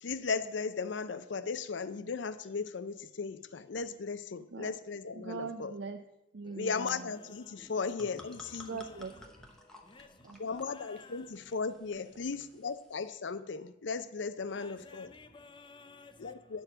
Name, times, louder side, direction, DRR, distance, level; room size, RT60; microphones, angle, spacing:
voice 1, 0.0-5.7 6.6-8.7 10.4-15.1 16.2-16.6, left 5 dB, 75° left, 14 dB, 0.5 m, -36 dB
voice 2, 5.1-6.0 6.3-7.1 8.6-9.6 10.0-10.6 11.9-12.0, right 5 dB, 70° right, 7 dB, 0.5 m, -43 dB
sound 1, 7.6-13.1, left 1 dB, 5° left, 0.9 m, -56 dB
voice 3, 9.6-10.3 10.7-11.3 14.5-16.4, left 3 dB, 25° left, 9 dB, 0.6 m, -54 dB
10.5 x 4.6 x 7.4 m, 0.91 s
head